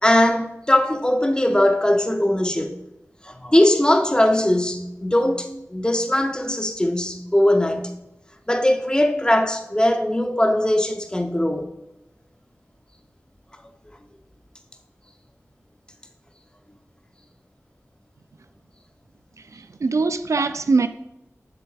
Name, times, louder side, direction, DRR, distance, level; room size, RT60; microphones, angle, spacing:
voice 1, 0.0-2.7 3.2-7.9 8.5-11.7, left 1 dB, 15° left, 0.8 m, -20 dB
voice 2, 19.5-20.9, right 4 dB, 75° right, 0.3 m, -22 dB
7.3 x 6.8 x 2.4 m
wide cardioid pair, 50°, 5 cm